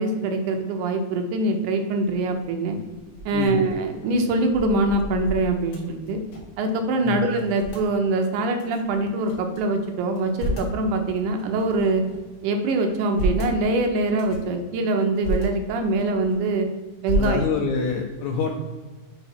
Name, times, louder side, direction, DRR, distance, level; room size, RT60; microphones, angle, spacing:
voice 1, 0.0-2.8 3.3-6.2 6.6-12.0 12.4-16.7 17.0-17.4, right 2 dB, 80° right, 4 dB, 2.1 m, -23 dB
sound 1, 2.9-6.7 6.9-7.0 7.3-7.9 8.6-9.6 10.0-10.8 11.4-12.3 12.8-13.6 14.1-14.5 15.0-15.5 15.9-16.6 17.0-17.8, equal, 55° left, 1.4 m, -31 dB
voice 2, 17.2-18.5, left 5 dB, 80° left, 2 dB, 1.7 m, -26 dB
5.8 x 4.6 x 4.1 m, 1.3 s
omnidirectional pair, 3.8 m